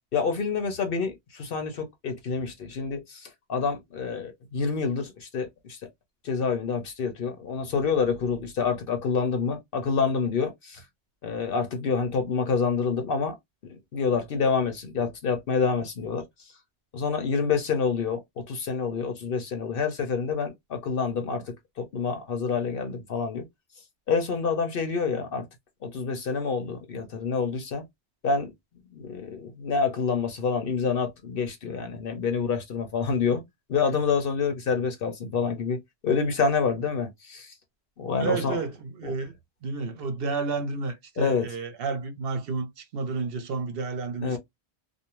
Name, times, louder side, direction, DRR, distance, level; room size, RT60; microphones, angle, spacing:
voice 1, 0.1-5.8 6.2-10.8 11.2-13.3 13.6-16.2 16.9-23.4 24.1-25.5 25.8-27.8 28.2-28.5 28.9-33.4 33.7-37.5 38.0-38.6 39.0-39.1 41.2-41.5 44.2-44.4, left 5 dB, 60° left, 0.9 m, -27 dB
voice 2, 38.2-39.3 39.6-44.4, right 4 dB, 65° right, 0.8 m, -31 dB
2.6 x 2.0 x 2.9 m
omnidirectional pair, 1.2 m